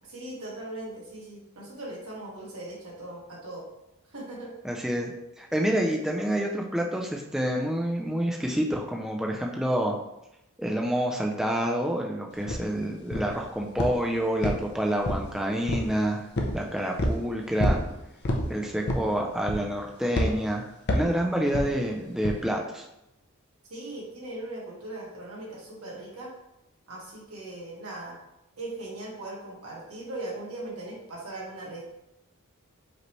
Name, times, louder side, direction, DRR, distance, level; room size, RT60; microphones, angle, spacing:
voice 1, 0.0-3.6 4.1-4.5 23.7-26.3 26.9-28.2 28.6-31.8, right 2 dB, 85° right, -4 dB, 1.6 m, -39 dB
voice 2, 4.6-10.0 10.6-16.3 16.5-17.8 18.5-22.9, right 1 dB, ahead, 0 dB, 0.3 m, -28 dB
sound 1, 12.5-12.6 13.1-13.4 13.8-14.0 14.4-15.3 15.7-15.9 16.3-16.6 17.0-17.2 17.6-17.9 18.2-18.5 18.9-19.1 19.5-19.8 20.1-20.3 20.9-21.1 21.5-21.7 22.2-22.4, left 1 dB, 50° left, 0.6 m, -27 dB
5.1 x 3.1 x 3.0 m, 0.86 s
head